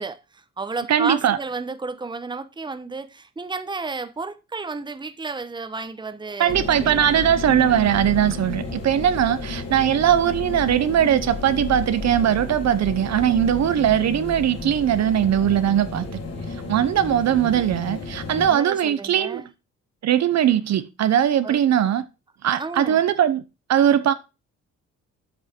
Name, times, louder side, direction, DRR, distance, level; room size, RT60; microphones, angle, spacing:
voice 1, 0.0-7.2 18.5-19.5 21.4-21.6 22.6-23.0, right 4 dB, 15° right, 0.9 m, -32 dB
voice 2, 0.9-1.4 6.4-16.0 16.7-19.4 20.0-22.0 22.4-23.4 23.7-24.1, right 10 dB, 60° right, 0.9 m, -20 dB
sound 1, 6.5-18.5, left 3 dB, 55° left, 3.5 m, -32 dB
8.1 x 5.5 x 4.5 m
cardioid pair, 90°, 30 cm